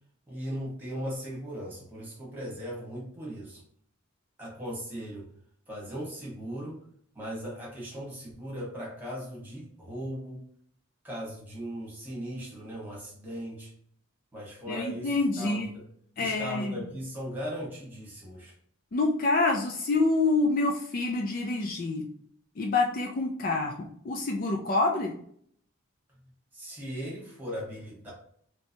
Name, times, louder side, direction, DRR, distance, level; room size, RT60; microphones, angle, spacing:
voice 1, 0.3-3.6 4.4-5.3 5.7-6.8 7.1-10.4 11.0-13.7 14.3-15.8 16.2-18.5 26.5-28.1, equal, 10° right, -5 dB, 1.3 m, -38 dB
voice 2, 14.7-15.7 16.2-16.8 18.9-22.1 22.6-25.1, left 3 dB, 45° left, 2 dB, 0.4 m, -27 dB
3.2 x 2.9 x 2.7 m, 0.63 s
head